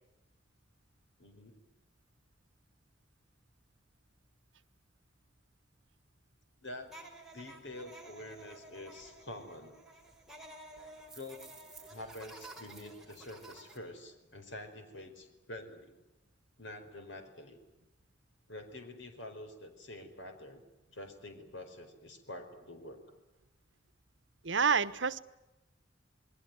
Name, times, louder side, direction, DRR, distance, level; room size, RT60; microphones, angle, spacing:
voice 1, 1.2-1.6 6.6-7.0 7.3-9.8 11.1-11.5 11.9-16.0 16.6-17.6 18.5-20.6 20.9-23.0, left 1 dB, 80° left, 6 dB, 5.0 m, -47 dB
sound 1, 6.9-13.8, right 2 dB, ahead, 5.8 m, -52 dB
voice 2, 24.4-25.2, right 5 dB, 80° right, 15 dB, 1.1 m, -28 dB
28.5 x 21.0 x 9.5 m, 0.97 s
head